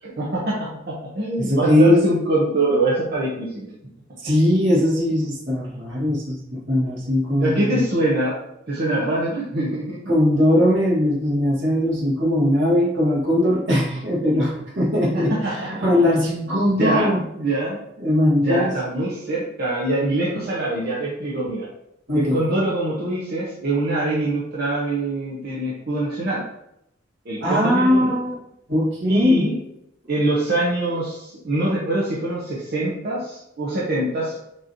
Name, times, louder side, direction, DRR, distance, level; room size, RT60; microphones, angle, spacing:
voice 1, 0.0-3.7 7.4-8.4 8.7-10.0 15.1-16.0 16.7-17.8 18.4-21.7 22.1-26.4 27.2-28.2 29.1-29.6 30.1-34.4, right 2 dB, 55° right, -6 dB, 0.8 m, -24 dB
voice 2, 1.4-2.0 4.2-7.8 10.1-17.2 18.0-18.7 22.1-22.4 27.4-28.3 28.7-29.5, left 1 dB, 80° right, -5 dB, 1.6 m, -20 dB
6.2 x 3.0 x 2.7 m, 0.82 s
head